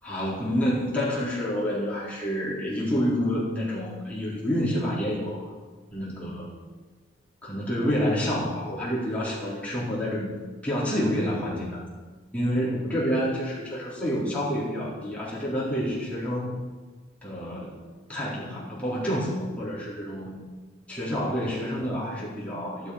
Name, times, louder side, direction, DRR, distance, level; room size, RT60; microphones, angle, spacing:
voice 1, 0.0-5.5 5.9-6.5 7.4-10.3 10.6-11.8 12.3-16.6 17.2-17.7 18.1-20.4 20.9-22.9, equal, 5° left, -8 dB, 4.2 m, -28 dB
12.5 x 11.5 x 5.9 m, 1.4 s
head